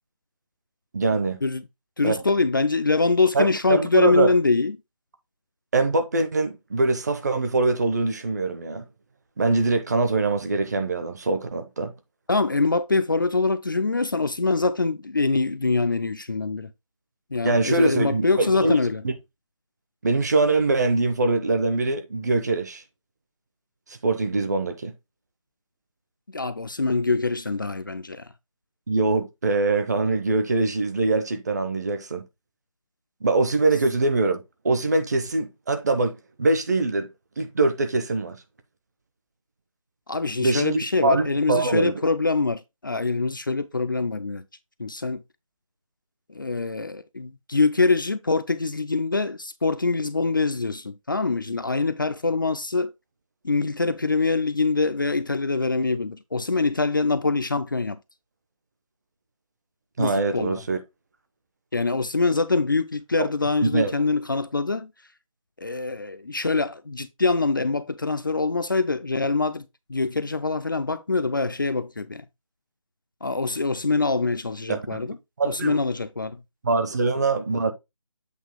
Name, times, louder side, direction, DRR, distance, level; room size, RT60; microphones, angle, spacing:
voice 1, 0.9-1.4 2.0-2.2 3.3-4.3 5.7-8.8 9.4-11.9 17.4-19.1 20.0-22.8 23.9-24.9 28.9-32.2 33.2-37.1 37.4-38.4 40.4-41.9 60.0-60.8 63.2-63.3 63.6-63.9 74.7-74.8 75.4-75.8 76.6-77.7, right 3 dB, 30° right, 0.9 m, -23 dB
voice 2, 2.0-4.8 12.3-16.7 17.3-19.0 26.3-28.3 40.1-44.4 44.8-45.2 46.4-52.9 53.4-58.0 60.0-60.6 61.7-64.9 65.6-72.2 73.2-75.2 75.4-76.4, left 3 dB, 40° left, 0.4 m, -24 dB
8.1 x 2.9 x 4.6 m
figure-of-eight pair, 160°, 18 cm